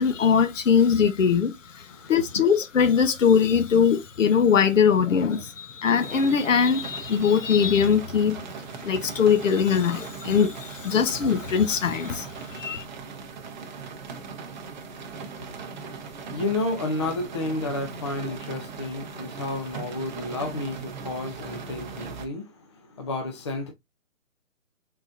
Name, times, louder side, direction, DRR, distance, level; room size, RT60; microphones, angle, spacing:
voice 1, 0.0-8.4 8.8-12.8, left 7 dB, 70° left, 1.0 m, -21 dB
voice 2, 1.9-2.5 14.9-23.7, left 2 dB, 20° left, 0.5 m, -32 dB
sound 1, 6.0-22.3, right 5 dB, 35° right, 0.7 m, -39 dB
4.1 x 3.8 x 2.5 m
hypercardioid pair, 160°, 40 cm